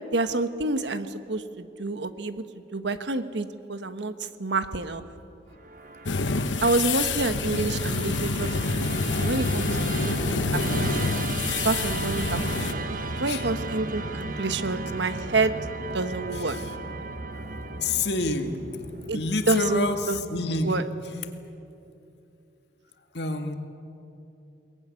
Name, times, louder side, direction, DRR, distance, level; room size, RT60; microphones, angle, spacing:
voice 1, 0.1-5.0 6.6-8.9 9.2-11.1 11.6-12.8 13.2-15.6 15.9-16.6 19.1-20.2 20.6-20.8, right 3 dB, 75° right, 10 dB, 1.2 m, -28 dB
Musical instrument, 5.6-20.9, right 2 dB, 45° right, 1.2 m, -35 dB
sound 1, 6.1-12.7, left 3 dB, 90° left, 1.1 m, -27 dB
voice 2, 16.3-16.7 17.8-18.6 19.1-20.8 21.1-21.3 23.1-23.6, left 2 dB, 65° left, 6 dB, 2.0 m, -28 dB
22.5 x 20.0 x 9.7 m, 2.8 s
head